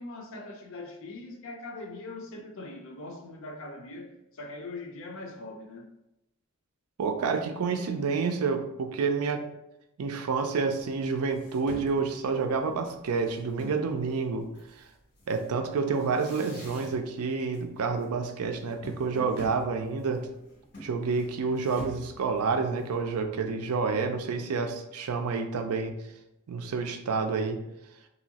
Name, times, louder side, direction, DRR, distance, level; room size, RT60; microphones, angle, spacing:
voice 1, 0.0-5.9, left 2 dB, 60° left, 0.5 m, -41 dB
voice 2, 7.0-9.4 10.0-14.5 14.8-14.9 15.3-20.3 20.8-26.0 26.5-27.6, right 4 dB, 85° right, 0.4 m, -29 dB
sound 1, 10.8-10.9 11.2-13.9 14.5-17.2 17.5-18.0 18.3-23.0, equal, 90° left, 1.1 m, -47 dB
3.0 x 2.7 x 2.7 m
head